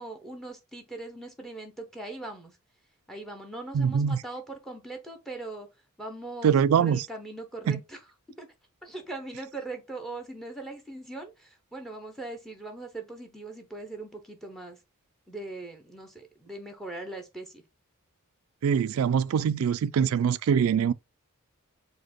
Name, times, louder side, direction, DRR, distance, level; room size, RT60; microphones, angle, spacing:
voice 1, 0.0-2.6 3.1-5.7 6.0-8.0 8.4-8.5 8.8-14.8 15.3-17.6, right 2 dB, ahead, 0.7 m, -40 dB
voice 2, 3.7-4.2 6.4-7.0 7.7-7.8 18.6-20.9, right 7 dB, 70° right, 0.3 m, -23 dB
5.0 x 2.2 x 4.2 m
head